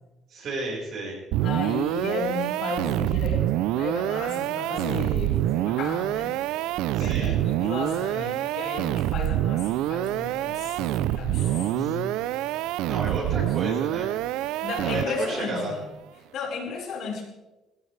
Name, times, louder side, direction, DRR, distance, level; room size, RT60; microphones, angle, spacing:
voice 1, 0.3-1.2 6.9-7.4 11.3-11.9 12.8-14.2 14.8-15.8, right 2 dB, 40° right, -4 dB, 4.8 m, -32 dB
sound 1, 1.3-15.4, right 14 dB, 85° right, 0.4 m, -26 dB
voice 2, 1.4-3.4 3.8-6.4 7.0-12.2 13.1-13.7 14.6-15.8 16.3-17.2, left 4 dB, 50° left, 0 dB, 4.7 m, -34 dB
21.0 x 17.5 x 3.3 m, 1.0 s
cardioid pair, 180°, 0 cm